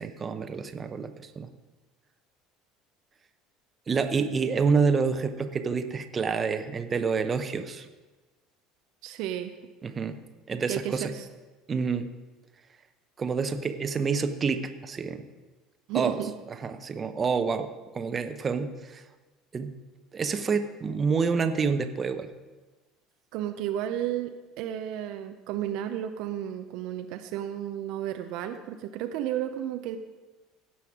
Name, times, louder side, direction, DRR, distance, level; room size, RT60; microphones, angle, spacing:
voice 1, 0.0-1.5 3.9-7.9 9.8-10.2 10.5-11.1 11.7-12.1 13.2-15.2 15.9-16.2 16.5-17.7 17.9-19.0 19.5-19.7 20.1-22.3, right 5 dB, 30° right, 8 dB, 0.9 m, -28 dB
voice 2, 9.0-9.5 10.7-11.2 15.9-16.3 23.3-24.3 24.6-30.0, right 11 dB, 65° right, 6 dB, 0.7 m, -32 dB
16.5 x 5.7 x 4.8 m, 1.2 s
hypercardioid pair, 70°, 0 cm